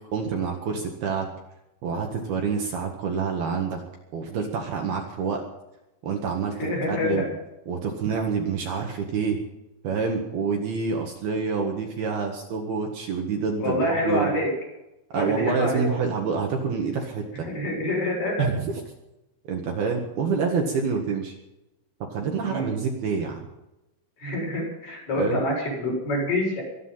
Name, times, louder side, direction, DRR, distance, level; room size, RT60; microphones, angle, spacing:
voice 1, 0.1-1.3 1.8-3.8 4.1-5.4 6.0-7.3 7.7-9.4 9.8-14.3 15.1-17.5 18.4-18.7 19.5-21.3 22.1-23.4 25.1-25.4, right 5 dB, 60° right, 1 dB, 3.3 m, -27 dB
voice 2, 6.6-7.2 13.6-14.4 15.1-16.0 17.5-18.4 22.5-22.8 24.2-26.6, left 1 dB, 45° left, -3 dB, 8.7 m, -26 dB
23.5 x 9.6 x 5.8 m, 0.93 s
omnidirectional pair, 5.6 m